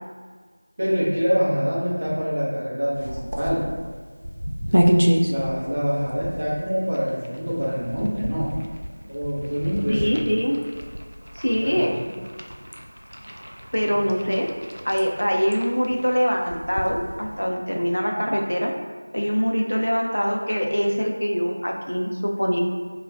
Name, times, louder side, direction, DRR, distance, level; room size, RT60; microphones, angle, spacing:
voice 1, 0.8-3.6 4.6-4.7 5.2-8.5 8.8-10.2 11.5-12.1 13.8-14.0, equal, 25° right, -8 dB, 0.6 m, -25 dB
sound 1, 2.9-17.5, equal, 75° right, 0.3 m, -29 dB
voice 2, 9.9-10.6 11.4-11.9 13.7-14.5 14.8-18.7 19.1-22.6, equal, 80° left, 1 dB, 0.4 m, -23 dB
2.5 x 2.2 x 3.2 m, 1.5 s
figure-of-eight pair, 175°, 0 cm